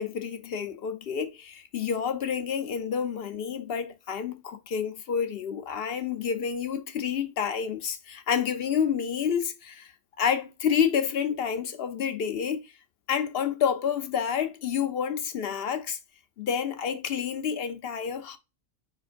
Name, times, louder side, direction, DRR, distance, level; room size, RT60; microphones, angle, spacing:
voice 1, 0.0-9.9 10.2-12.6 13.1-16.0 16.4-18.4, left 7 dB, 55° left, 0.8 m, -29 dB
7.4 x 5.1 x 2.5 m
omnidirectional pair, 1.3 m